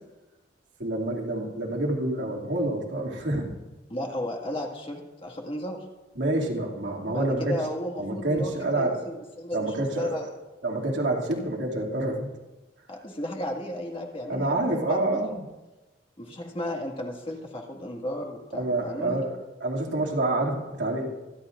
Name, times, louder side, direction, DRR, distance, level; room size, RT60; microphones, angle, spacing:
voice 1, 0.8-3.5 6.2-7.6 8.0-9.0 9.5-10.2 10.6-12.3 14.3-15.4 18.5-21.1, right 2 dB, 80° right, -2 dB, 2.7 m, -27 dB
voice 2, 3.9-5.8 7.1-10.3 12.9-15.0 16.2-19.3, left 1 dB, 30° left, 1 dB, 2.0 m, -34 dB
26.0 x 11.5 x 2.6 m, 1.1 s
head